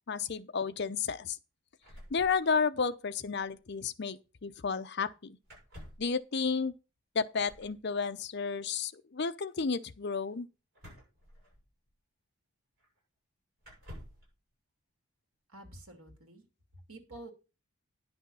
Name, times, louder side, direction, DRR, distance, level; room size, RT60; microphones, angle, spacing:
voice 1, 0.1-1.4 2.1-5.4 6.0-6.8 7.1-10.5, left 5 dB, 50° left, 0.6 m, -32 dB
sound 1, 1.8-2.9 3.1-3.2 3.4-3.6 5.4-6.2 7.4-7.8 10.7-11.9 12.8-12.9 13.6-14.3, equal, 45° right, 7.6 m, -51 dB
voice 2, 15.5-16.4 16.7-17.3, right 1 dB, 80° right, 2.7 m, -49 dB
10.5 x 6.2 x 5.6 m
head